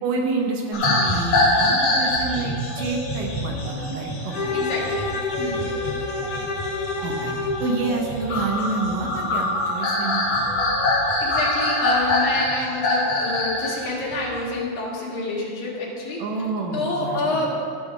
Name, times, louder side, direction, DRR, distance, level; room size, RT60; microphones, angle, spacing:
voice 1, 0.0-4.6 7.0-7.3 7.6-10.4 16.2-17.5, right 3 dB, 75° right, 0 dB, 2.4 m, -28 dB
sound 1, 0.7-13.7 14.1-14.4, left 2 dB, 50° left, 2.3 m, -24 dB
sound 2, 1.9-2.1 2.5-12.2, equal, 55° right, 2.4 m, -38 dB
Bowed string instrument, 4.3-7.7, left 3 dB, 90° left, 0.8 m, -28 dB
voice 2, 4.5-5.1 5.4-5.6 11.2-16.2 16.7-17.5, left 2 dB, 70° left, -4 dB, 3.3 m, -27 dB
14.0 x 6.8 x 3.8 m, 2.4 s
omnidirectional pair, 4.3 m